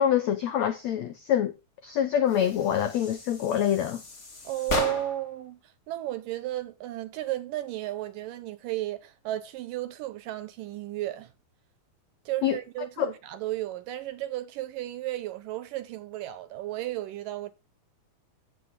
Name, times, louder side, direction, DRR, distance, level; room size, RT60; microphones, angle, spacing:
voice 1, 0.0-1.5 1.8-4.0 12.4-12.6 13.0-13.1, left 9 dB, 80° left, 1.5 m, -25 dB
sound 1, 2.3-5.4, left 2 dB, 25° left, 1.6 m, -36 dB
voice 2, 4.4-11.3 12.3-17.5, right 15 dB, 75° right, 2.1 m, -34 dB
16.5 x 7.6 x 3.6 m
omnidirectional pair, 4.4 m